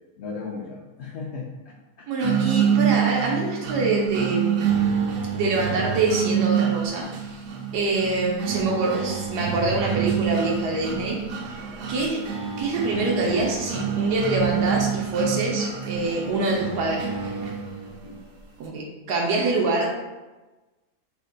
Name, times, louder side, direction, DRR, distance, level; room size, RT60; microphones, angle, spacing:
voice 1, 0.2-2.3 18.0-18.2, left 4 dB, 75° left, -3 dB, 0.6 m, -37 dB
voice 2, 2.1-5.0 5.3-7.4 7.7-11.2 11.9-12.3 12.6-17.3 18.6-19.9, right 3 dB, 85° right, -2 dB, 1.1 m, -25 dB
sound 1, 2.2-18.2, right 8 dB, 70° right, 0.9 m, -27 dB
3.3 x 2.1 x 3.7 m, 1.1 s
omnidirectional pair, 1.7 m